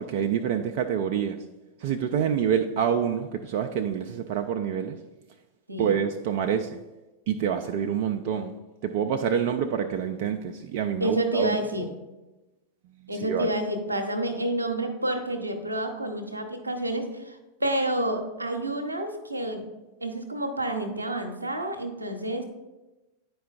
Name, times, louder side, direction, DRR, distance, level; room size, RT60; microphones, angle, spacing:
voice 1, 0.0-1.5 1.8-5.0 5.8-6.8 7.3-11.9 13.1-13.5, right 8 dB, 50° right, 0.3 m, -27 dB
voice 2, 11.0-11.9 13.1-19.6 20.0-22.4, right 1 dB, 80° right, 0.7 m, -29 dB
9.3 x 4.6 x 2.3 m
figure-of-eight pair, 90°, 0 cm